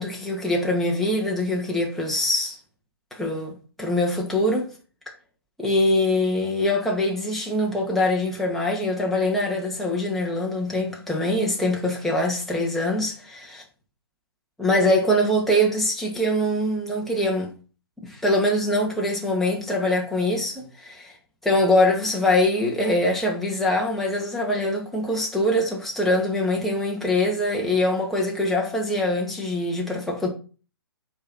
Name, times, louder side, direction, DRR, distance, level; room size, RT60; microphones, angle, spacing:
voice 1, 0.0-2.6 3.1-4.7 5.6-13.6 14.6-17.5 18.0-21.1 21.4-30.3, left 1 dB, ahead, 2.4 m, -23 dB
7.2 x 5.8 x 6.4 m
figure-of-eight pair, 130°, 13 cm